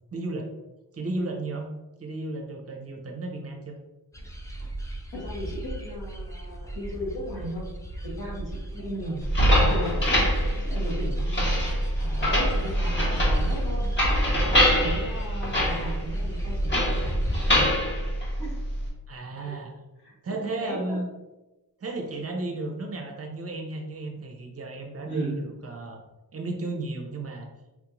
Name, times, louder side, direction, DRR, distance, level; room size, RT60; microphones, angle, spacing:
voice 1, 0.1-0.5 0.9-1.7 2.0-3.8 4.2-4.3 4.6-4.7 19.1-19.7 20.2-21.1 21.8-26.0 26.3-27.5, right 2 dB, 40° right, 2 dB, 0.5 m, -34 dB
sound 1, 4.1-17.7, right 1 dB, 10° left, 0.3 m, -36 dB
voice 2, 5.1-7.7 8.0-9.2 9.6-10.1 10.5-17.8 18.4-18.6 19.4-19.6 20.0-20.1 20.4-21.0 25.1-25.4, equal, 85° left, -5 dB, 1.5 m, -37 dB
sound 2, 9.2-18.9, equal, 30° left, 1.0 m, -24 dB
3.5 x 2.5 x 2.9 m, 1.1 s
wide cardioid pair, 135°, 38 cm